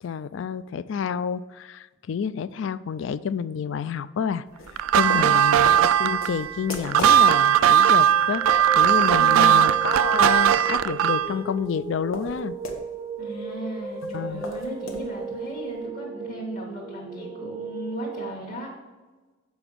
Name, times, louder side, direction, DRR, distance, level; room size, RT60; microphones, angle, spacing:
voice 1, 0.0-4.4 4.9-8.5 8.7-12.5 14.0-14.5, left 7 dB, 60° left, 16 dB, 0.3 m, -29 dB
sound 1, 4.6-12.9 13.1-13.2 13.5-15.8, left 2 dB, 85° left, 1.1 m, -38 dB
sound 2, 4.8-11.3, right 10 dB, 85° right, 0.3 m, -18 dB
voice 2, 5.0-5.5 9.2-9.7 13.2-18.7, right 1 dB, 35° left, -4 dB, 1.3 m, -36 dB
sound 3, 8.1-18.3, right 4 dB, 20° right, 0.5 m, -35 dB
7.0 x 4.9 x 6.1 m, 1.3 s
head